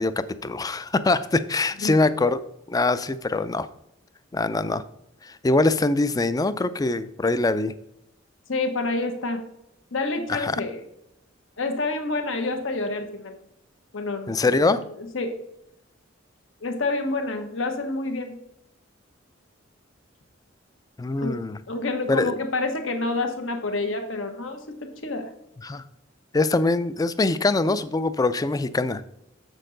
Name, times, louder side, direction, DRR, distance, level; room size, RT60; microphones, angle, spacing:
voice 1, 0.0-2.4 2.7-3.7 4.3-4.8 5.2-7.7 10.3-10.6 14.3-14.8 21.0-21.6 22.1-22.4 25.6-25.8 26.3-29.0, left 2 dB, 20° left, 14 dB, 0.4 m, -23 dB
voice 2, 8.5-9.5 9.9-10.8 11.6-13.3 13.9-14.4 14.7-14.8 15.1-15.4 16.6-18.4 21.2-21.4 21.7-25.3, left 2 dB, 80° left, 5 dB, 1.2 m, -28 dB
7.5 x 6.5 x 3.9 m, 0.80 s
head